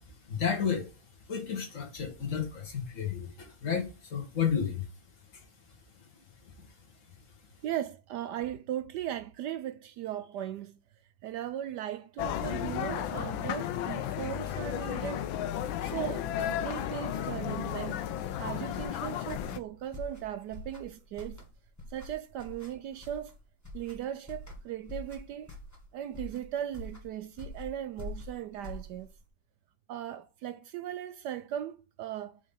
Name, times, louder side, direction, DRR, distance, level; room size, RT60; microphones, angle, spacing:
voice 1, 0.3-0.9 1.3-4.8 5.3-5.4, left 7 dB, 40° left, 2.1 m, -32 dB
voice 2, 7.6-10.8 11.2-15.2 15.8-18.0 18.4-21.4 21.9-23.3 23.7-25.5 25.9-29.1 29.9-32.4, right 11 dB, 75° right, 1.0 m, -38 dB
sound 1, 12.2-19.6, left 10 dB, 85° left, 1.4 m, -34 dB
sound 2, 18.6-29.3, left 1 dB, 10° left, 1.5 m, -45 dB
6.2 x 3.8 x 5.4 m
omnidirectional pair, 2.1 m